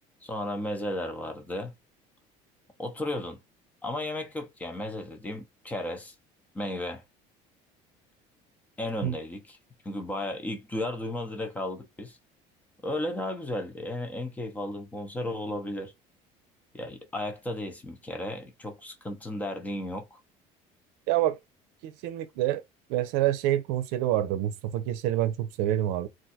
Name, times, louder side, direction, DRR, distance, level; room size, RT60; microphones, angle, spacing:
voice 1, 0.2-1.7 2.8-3.4 3.8-6.1 6.5-7.0 8.8-9.6 9.8-12.2 12.8-15.9 16.7-20.2, left 1 dB, 10° left, 0.7 m, -34 dB
voice 2, 21.1-21.4 21.8-22.6 22.9-26.1, right 13 dB, 85° right, 0.6 m, -27 dB
2.5 x 2.3 x 4.1 m
cardioid pair, 160°, 15 cm